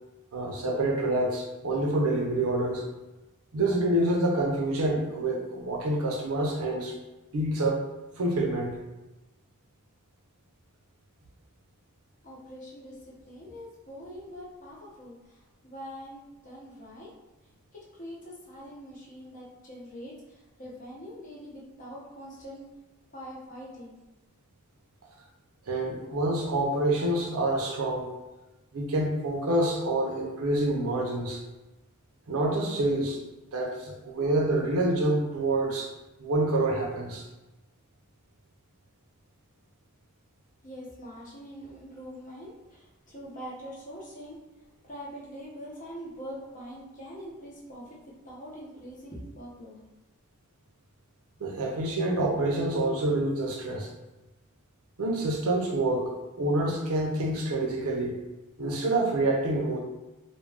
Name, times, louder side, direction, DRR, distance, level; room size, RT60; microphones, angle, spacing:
voice 1, 0.3-2.8 3.5-6.9 7.3-7.9 8.2-8.8 25.7-28.1 28.7-31.4 32.3-33.2 33.5-35.9 36.2-37.2 51.4-53.9 55.0-56.1 56.4-58.2 58.6-59.8, right 1 dB, 75° right, 0 dB, 0.6 m, -27 dB
voice 2, 12.2-17.1 17.7-22.7 23.1-24.0 40.6-44.4 44.8-49.8, equal, 35° left, -4 dB, 0.7 m, -44 dB
2.3 x 2.2 x 3.3 m, 1.0 s
head